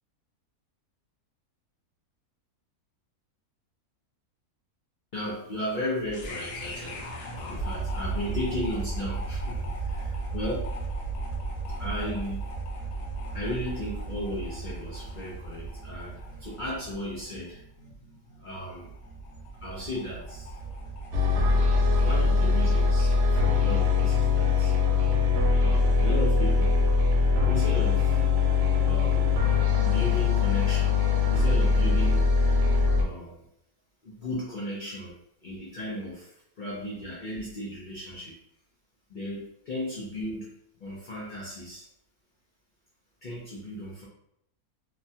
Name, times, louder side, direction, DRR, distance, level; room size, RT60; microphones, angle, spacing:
voice 1, 5.1-7.1 7.4-10.7 11.8-12.4 13.3-17.6 18.4-18.9 19.6-20.6 22.0-24.7 25.6-26.8 27.4-28.2 28.8-29.2 29.8-31.0 31.3-32.4 32.9-33.4 34.0-35.1 35.4-38.4 39.1-40.5 40.8-41.9 43.2-44.0, left 1 dB, 85° left, -5 dB, 0.4 m, -35 dB
sound 1, 6.1-22.3, right 3 dB, 70° left, 1.0 m, -36 dB
sound 2, 21.1-33.0, left 4 dB, 90° right, 1.1 m, -22 dB
2.9 x 2.2 x 2.7 m, 0.75 s
omnidirectional pair, 1.6 m